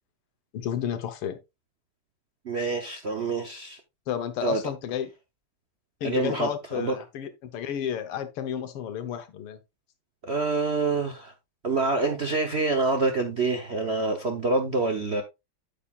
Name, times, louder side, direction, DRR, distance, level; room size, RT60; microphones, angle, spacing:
voice 1, 0.5-1.4 4.1-5.1 6.0-9.6, left 9 dB, 90° left, 2.0 m, -32 dB
voice 2, 2.4-3.8 4.4-4.6 6.0-6.9 10.2-11.3 11.6-15.2, right 3 dB, 55° right, 0.7 m, -26 dB
8.6 x 8.1 x 2.4 m
omnidirectional pair, 2.4 m